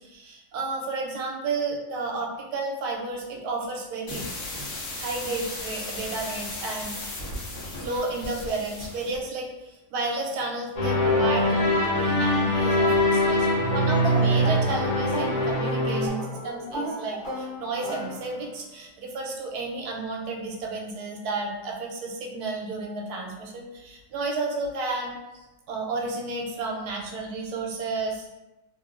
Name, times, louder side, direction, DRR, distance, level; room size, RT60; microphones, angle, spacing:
voice 1, 0.0-7.0 7.8-25.2 25.7-28.3, right 3 dB, 75° right, -1 dB, 1.0 m, -32 dB
sound 1, 4.1-9.2, left 2 dB, 60° left, 1.0 m, -36 dB
sound 2, 10.8-16.1, left 1 dB, 20° left, 1.0 m, -23 dB
sound 3, 14.0-18.6, equal, 40° left, 0.6 m, -35 dB
3.0 x 2.2 x 2.3 m, 1.0 s
omnidirectional pair, 1.8 m